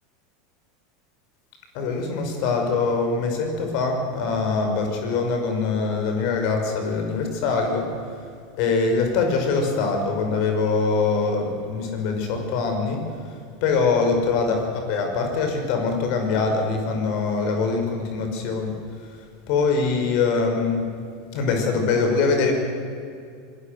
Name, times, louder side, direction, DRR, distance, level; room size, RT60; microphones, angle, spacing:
voice 1, 1.7-7.9 8.6-13.0 13.6-18.8 19.5-20.9 21.3-22.5, left 4 dB, 55° left, 4 dB, 5.7 m, -23 dB
25.5 x 20.5 x 6.7 m, 2.4 s
figure-of-eight pair, 85°, 0 cm